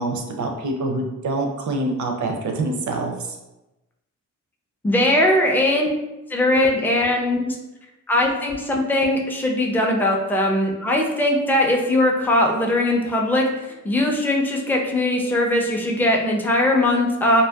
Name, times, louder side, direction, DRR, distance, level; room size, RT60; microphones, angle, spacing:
voice 1, 0.0-3.4, right 2 dB, 60° right, 2 dB, 0.5 m, -26 dB
voice 2, 4.8-5.9 6.3-7.6 8.1-13.5 13.8-17.4, left 1 dB, 5° left, 0 dB, 0.3 m, -20 dB
2.6 x 2.1 x 2.2 m, 0.99 s
cardioid pair, 85°, 33 cm